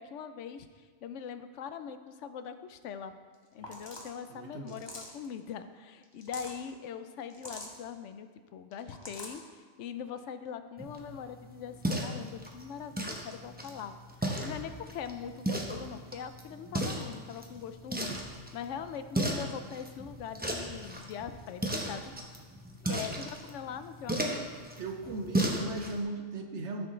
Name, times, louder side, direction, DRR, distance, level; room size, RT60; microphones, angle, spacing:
voice 1, 0.0-3.1 3.5-14.0 14.4-22.1 22.8-24.5, left 7 dB, 75° left, 10 dB, 0.9 m, -42 dB
sound 1, 3.3-3.4 3.6-4.1 4.7-5.3 6.0-6.6 7.3-7.8 8.7-9.4, left 1 dB, 20° left, 1.1 m, -44 dB
voice 2, 4.3-4.8 22.8-23.1 24.8-26.9, right 2 dB, 65° right, 4 dB, 1.1 m, -38 dB
sound 2, 10.8-26.0, right 1 dB, 10° right, 0.7 m, -36 dB
13.5 x 6.4 x 3.2 m, 1.5 s
omnidirectional pair, 1.3 m